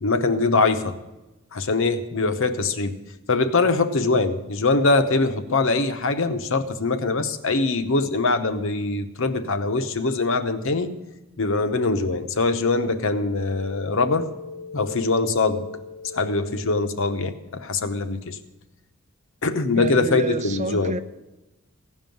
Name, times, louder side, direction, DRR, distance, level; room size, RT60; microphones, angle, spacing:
voice 1, 0.0-0.9 1.5-2.9 3.3-10.9 11.4-18.4 19.4-20.9, left 3 dB, 60° left, 0.9 m, -23 dB
voice 2, 19.7-21.0, right 2 dB, 30° right, 0.6 m, -29 dB
16.0 x 5.5 x 9.1 m
head